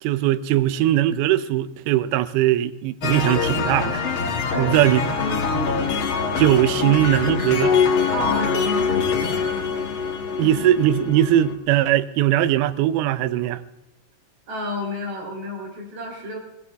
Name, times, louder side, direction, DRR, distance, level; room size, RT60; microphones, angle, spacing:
voice 1, 0.0-4.0 4.6-5.1 6.4-7.8 10.4-13.6, right 13 dB, 85° right, 2.6 m, -20 dB
sound 1, 3.0-11.5, left 5 dB, 60° left, 1.3 m, -24 dB
voice 2, 4.5-5.7 8.1-9.7 10.4-10.7 14.5-16.4, equal, 50° right, 4.5 m, -31 dB
20.0 x 18.0 x 3.4 m
omnidirectional pair, 4.3 m